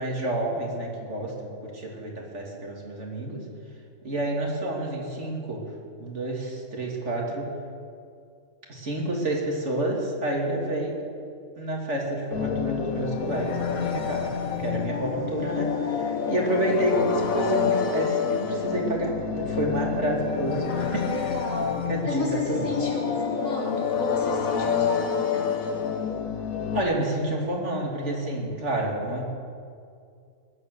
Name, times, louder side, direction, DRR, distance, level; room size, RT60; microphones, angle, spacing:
voice 1, 0.0-3.4 4.0-5.6 6.0-7.5 8.7-11.0 11.6-21.0 21.9-22.7 26.7-29.2, right 1 dB, 55° right, -1 dB, 2.8 m, -29 dB
sound 1, 12.3-26.8, left 7 dB, 85° left, 1.5 m, -28 dB
voice 2, 20.7-25.6, left 2 dB, 70° left, -5 dB, 4.2 m, -33 dB
21.0 x 9.1 x 6.8 m, 2.3 s
omnidirectional pair, 1.4 m